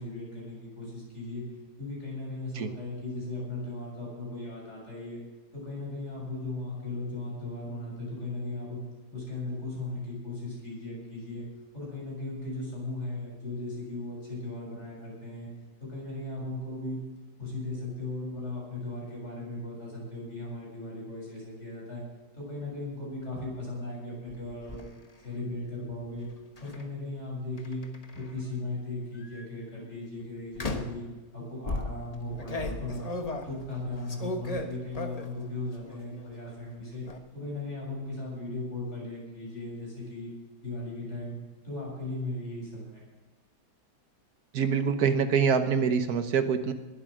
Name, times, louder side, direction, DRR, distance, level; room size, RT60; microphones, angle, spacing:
voice 1, 0.0-1.4 1.8-5.2 5.5-8.8 9.1-11.4 11.7-15.5 15.8-17.0 17.4-22.0 22.3-24.9 25.2-26.3 26.6-27.9 28.1-31.0 31.3-33.1 33.4-37.0 37.3-40.3 40.6-41.4 41.6-43.0, left 2 dB, 40° left, -4 dB, 7.4 m, -37 dB
sound 1, 24.3-24.8 26.6-26.8 27.6-28.4 29.1-29.4 30.6-31.1 31.7-35.4 35.8-36.3 36.6-37.2, left 2 dB, 25° left, 1.1 m, -36 dB
voice 2, 44.5-46.7, right 6 dB, 65° right, 9 dB, 1.5 m, -25 dB
20.5 x 8.9 x 6.3 m, 1.2 s
omnidirectional pair, 1.8 m